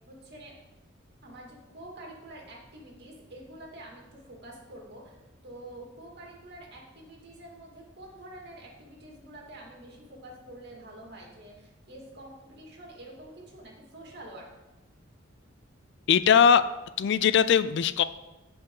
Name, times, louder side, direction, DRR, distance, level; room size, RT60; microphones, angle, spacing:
voice 1, 0.1-0.6 1.2-14.5, right 1 dB, 55° right, -1 dB, 2.5 m, -47 dB
voice 2, 16.1-16.6 17.0-18.0, left 7 dB, 60° left, 14 dB, 0.4 m, -20 dB
14.5 x 5.3 x 3.9 m, 1.0 s
head